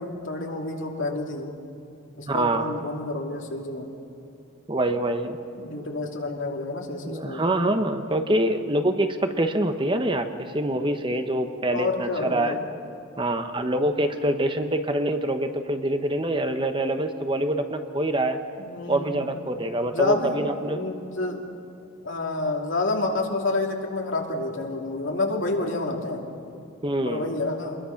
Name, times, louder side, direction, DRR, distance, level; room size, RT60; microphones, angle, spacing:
voice 1, 0.0-1.5 2.1-3.9 5.6-7.4 11.7-12.7 18.6-19.2 19.8-21.4 22.0-26.2 27.0-27.8, left 2 dB, 65° left, 1 dB, 2.9 m, -29 dB
voice 2, 2.3-2.7 4.7-5.4 7.0-12.6 13.2-18.4 18.9-20.8 26.8-27.4, right 1 dB, 25° right, 7 dB, 1.0 m, -25 dB
27.0 x 21.5 x 5.9 m, 2.6 s
head